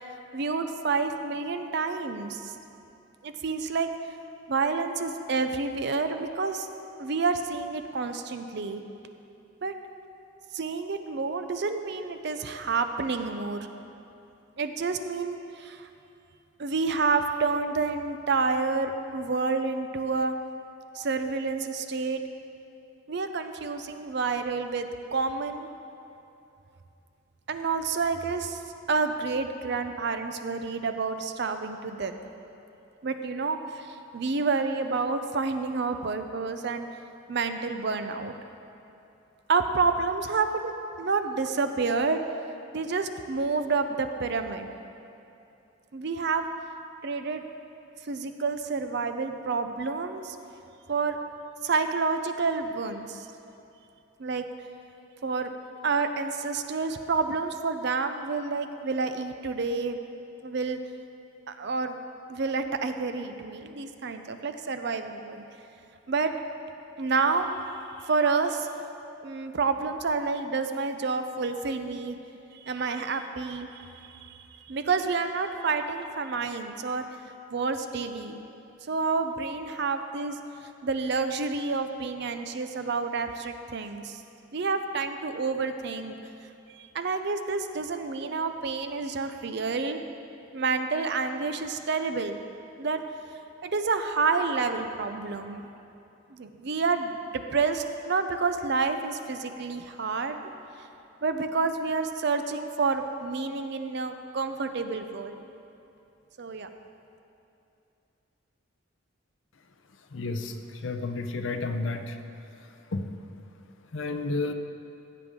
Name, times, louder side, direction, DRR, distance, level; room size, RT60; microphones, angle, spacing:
voice 1, 0.3-2.5 3.2-3.9 4.5-6.7 7.0-8.8 9.6-9.7 10.5-13.7 14.6-15.9 16.6-20.3 20.9-22.2 23.1-25.7 27.5-28.6 28.9-32.1 33.0-36.9 37.3-38.3 39.5-42.2 42.7-44.7 45.9-46.4 47.0-47.4 48.0-50.4 50.9-51.2 51.6-53.3 54.2-54.4 55.2-55.5 55.8-60.0 60.4-60.8 61.5-62.0 62.3-65.4 66.1-66.3 67.0-68.7 69.2-72.2 72.5-77.1 77.5-78.4 78.9-80.4 80.8-84.2 84.5-86.2 86.7-90.0 90.5-92.4 92.8-93.0 93.6-95.7 96.3-100.4 101.2-105.4 106.4-106.7, right 4 dB, 50° right, 8 dB, 0.5 m, -29 dB
voice 2, 110.1-110.6 110.8-112.2 112.9-113.0 113.9-114.5, left 3 dB, 65° left, 7 dB, 0.6 m, -31 dB
15.5 x 7.7 x 3.7 m, 2.7 s
head